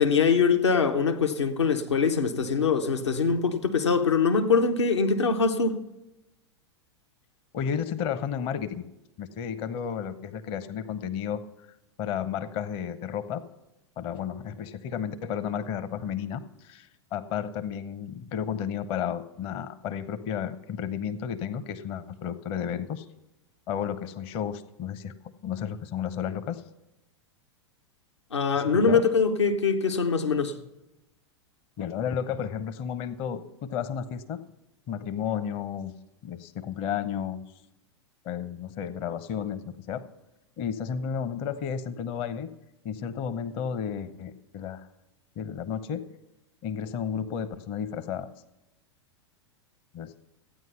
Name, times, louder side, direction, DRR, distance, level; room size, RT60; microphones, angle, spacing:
voice 1, 0.0-5.8 28.3-30.6, left 5 dB, 75° left, 1.1 m, -23 dB
voice 2, 7.5-8.8 9.2-11.4 12.0-13.4 14.0-23.1 23.7-25.1 25.4-26.6 28.5-29.0 31.8-34.4 34.9-35.9 36.2-37.4 38.2-40.0 40.6-42.5 42.8-44.9 45.4-46.1 46.6-48.3 49.9-50.1, left 8 dB, 40° left, 0.8 m, -32 dB
14.5 x 9.3 x 5.6 m
figure-of-eight pair, 90°, 14 cm